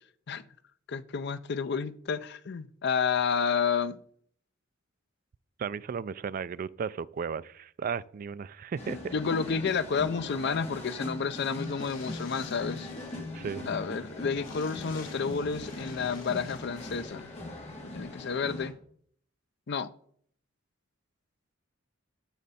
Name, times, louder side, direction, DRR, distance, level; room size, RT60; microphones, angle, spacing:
voice 1, 0.9-4.0 9.1-12.9 13.7-17.3 17.9-18.7 19.7-19.9, left 6 dB, 60° left, 0.5 m, -30 dB
voice 2, 5.6-9.1 13.3-13.7, right 6 dB, 45° right, 0.3 m, -35 dB
sound 1, 8.8-18.7, left 2 dB, 35° left, 2.7 m, -40 dB
sound 2, 11.4-13.3 13.5-13.6 13.9-14.0 14.3-17.0, left 5 dB, 90° left, 2.4 m, -51 dB
12.5 x 6.4 x 4.2 m
head